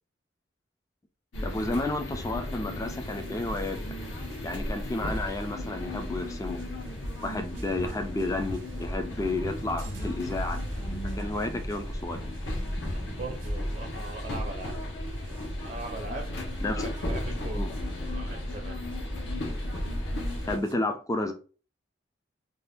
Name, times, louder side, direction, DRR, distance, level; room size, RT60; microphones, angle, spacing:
sound 1, 1.3-20.6, left 1 dB, 70° left, 0.8 m, -34 dB
voice 1, 1.4-3.8 4.4-6.6 7.2-10.6 10.9-12.2 16.6-16.9 17.5-17.7 20.5-21.3, left 2 dB, 15° left, 5 dB, 0.3 m, -31 dB
sound 2, 2.8-20.7, right 3 dB, 90° right, 0.6 m, -52 dB
voice 2, 12.9-14.7 15.6-17.7 18.1-18.9, right 2 dB, 45° right, 2 dB, 0.5 m, -40 dB
2.6 x 2.4 x 3.4 m, 0.36 s
head